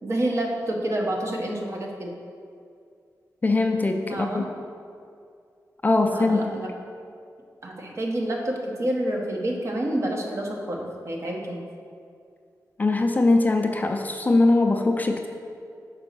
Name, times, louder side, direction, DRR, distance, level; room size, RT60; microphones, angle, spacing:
voice 1, 0.0-2.1 4.1-4.5 6.1-6.7 7.6-11.6, right 1 dB, 45° right, 0 dB, 0.9 m, -28 dB
voice 2, 3.4-4.4 5.8-6.5 12.8-15.3, left 2 dB, 25° left, 4 dB, 0.3 m, -21 dB
5.2 x 4.0 x 5.9 m, 2.3 s
wide cardioid pair, 135°, 7 cm